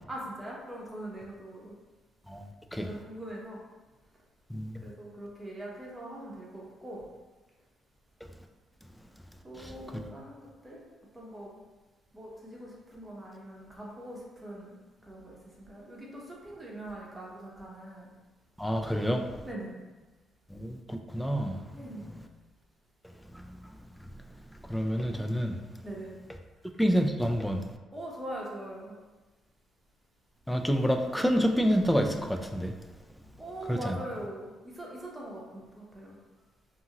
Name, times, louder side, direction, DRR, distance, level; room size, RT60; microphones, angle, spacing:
voice 1, 0.1-1.7 2.8-3.6 4.8-7.0 9.4-10.8 11.1-11.5 12.1-14.8 15.0-18.1 19.4-19.7 21.7-22.0 25.8-26.1 27.9-29.0 33.4-36.2, right 1 dB, 15° right, -3 dB, 0.8 m, -42 dB
voice 2, 18.6-19.2 20.5-21.6 24.7-25.5 26.8-27.6 30.5-32.7 33.7-33.9, equal, 5° left, 5 dB, 0.3 m, -28 dB
2.6 x 2.5 x 2.8 m, 1.2 s
cardioid pair, 90°, 0 cm